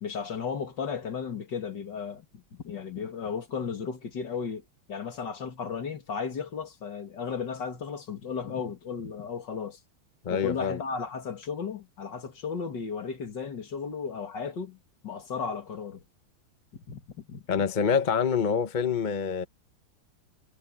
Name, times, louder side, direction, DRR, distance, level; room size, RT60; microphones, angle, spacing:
voice 1, 0.0-9.8 10.3-16.0 16.7-17.6, left 6 dB, 60° left, 2.7 m, -35 dB
voice 2, 10.2-10.8 17.5-19.4, left 6 dB, 35° left, 0.7 m, -26 dB
omnidirectional pair, 2.2 m